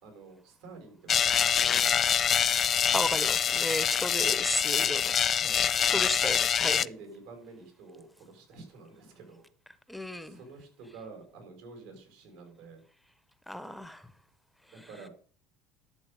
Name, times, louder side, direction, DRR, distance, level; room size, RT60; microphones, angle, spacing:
voice 1, 0.0-2.2 5.3-6.1 6.5-9.5 10.2-12.8 14.7-15.1, right 4 dB, 75° right, 5.6 m, -49 dB
sound 1, 1.1-6.9, left 8 dB, 40° left, 0.4 m, -25 dB
voice 2, 2.9-5.1 5.8-6.8 9.9-10.4 13.5-14.0, left 1 dB, ahead, 1.0 m, -33 dB
11.5 x 7.2 x 5.4 m
hypercardioid pair, 85°, 0 cm